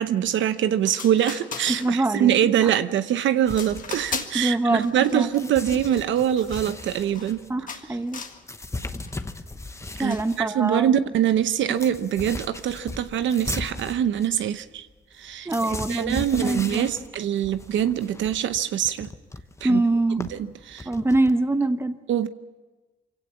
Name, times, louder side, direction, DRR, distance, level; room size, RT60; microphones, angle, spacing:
voice 1, 0.0-7.5 10.0-14.9 15.2-19.1 19.6-19.8 20.2-20.9 22.1-22.3, right 10 dB, 70° right, 0.8 m, -24 dB
sound 1, 0.6-0.7 0.9-2.2 2.6-3.0 3.5-4.5 4.8-7.4 7.7-8.4 8.8-9.2 10.1-10.4, left 5 dB, 40° left, 1.8 m, -38 dB
voice 2, 1.8-2.3 2.6-2.7 4.3-5.5 7.5-8.2 10.0-11.0 15.4-17.0 19.6-20.2 20.8-21.9, right 2 dB, 10° right, 1.1 m, -24 dB
sound 2, 3.5-5.0 5.4-10.4 10.8-10.9 11.1-21.3, left 2 dB, 15° left, 1.1 m, -37 dB
24.0 x 16.5 x 7.3 m
cardioid pair, 90°, 20 cm